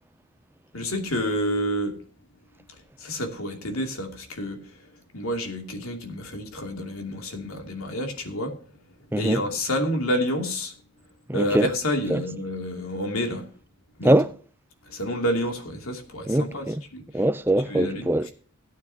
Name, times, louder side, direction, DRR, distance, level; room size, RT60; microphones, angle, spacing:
voice 1, 0.7-2.0 3.0-4.7 5.1-8.5 9.1-10.7 11.3-13.5 14.0-14.2 14.8-16.7 16.9-17.0 17.7-18.1, equal, 80° left, 2.6 m, -29 dB
voice 2, 9.1-9.4 11.3-11.7 12.1-12.2 14.0-14.3 16.3-16.8 17.1-18.3, right 1 dB, 10° right, 0.5 m, -22 dB
17.0 x 9.2 x 2.8 m
head